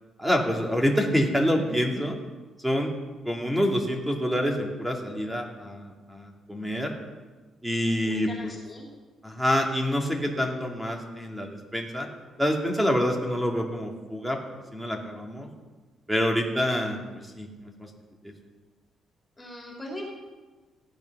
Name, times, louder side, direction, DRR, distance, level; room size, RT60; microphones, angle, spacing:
voice 1, 0.2-2.1 2.6-2.9 3.2-6.9 7.6-8.5 9.2-12.1 12.4-14.4 14.7-15.5 16.1-17.9 18.2-18.3, equal, 5° right, 1 dB, 2.3 m, -27 dB
voice 2, 8.0-8.9 19.4-20.0, left 1 dB, 15° left, -2 dB, 3.3 m, -40 dB
16.0 x 10.5 x 5.9 m, 1.3 s
cardioid pair, 130°, 0 cm